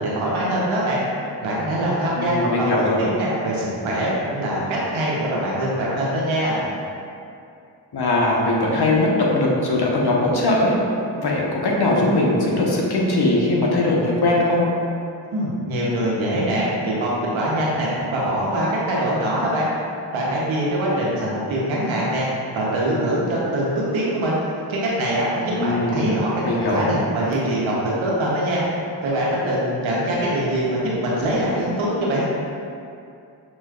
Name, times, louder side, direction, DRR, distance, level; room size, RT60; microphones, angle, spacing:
voice 1, 0.0-1.0 1.4-2.7 3.0-4.6 4.9-6.6 15.3-19.7 20.1-22.3 22.5-24.4 24.7-28.6 29.0-32.2, right 1 dB, 85° right, -5 dB, 1.1 m, -23 dB
voice 2, 2.2-3.0 7.9-10.7 11.2-14.6 25.5-26.0 26.4-27.0, left 2 dB, 55° left, -3 dB, 1.0 m, -20 dB
6.2 x 3.0 x 2.4 m, 2.5 s
cardioid pair, 45°, 46 cm